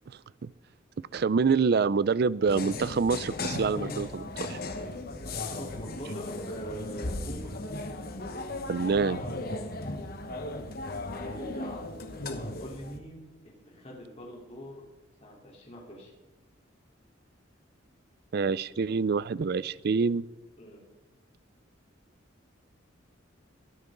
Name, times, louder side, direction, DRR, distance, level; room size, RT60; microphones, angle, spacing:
voice 1, 1.1-4.6 8.7-9.2 18.3-20.3, right 5 dB, 55° right, 19 dB, 0.4 m, -26 dB
sound 1, 2.5-13.0, left 2 dB, 50° left, 1.2 m, -36 dB
voice 2, 5.4-7.5 9.6-9.9 11.1-13.2 13.4-14.8 15.2-16.1 20.6-20.8, equal, 30° left, -3 dB, 3.8 m, -43 dB
22.5 x 9.8 x 3.9 m, 1.0 s
head